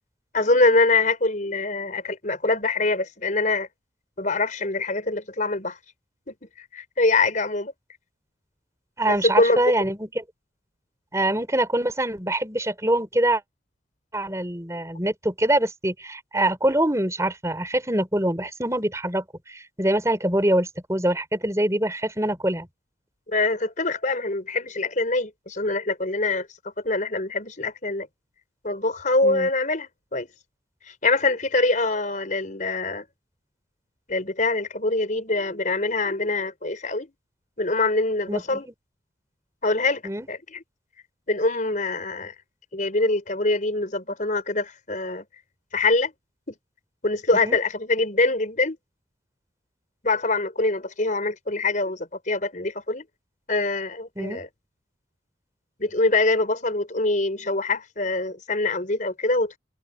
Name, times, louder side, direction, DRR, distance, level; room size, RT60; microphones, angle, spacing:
voice 1, 0.3-3.7 4.2-5.8 6.3-6.4 6.7-7.7 9.1-9.6 23.3-26.5 26.8-28.1 28.6-30.3 30.9-33.0 34.1-37.1 37.6-38.7 39.6-40.0 40.3-40.6 41.3-42.3 42.7-45.2 45.7-46.1 46.5-46.6 47.0-48.8 50.0-53.0 53.5-54.5 55.8-59.6, left 3 dB, 40° left, 4.8 m, -24 dB
voice 2, 9.0-10.2 11.1-13.4 14.1-22.7 29.2-29.5 38.3-38.6 40.0-40.3 47.4-47.6 54.2-54.4, right 1 dB, 15° right, 4.5 m, -24 dB
head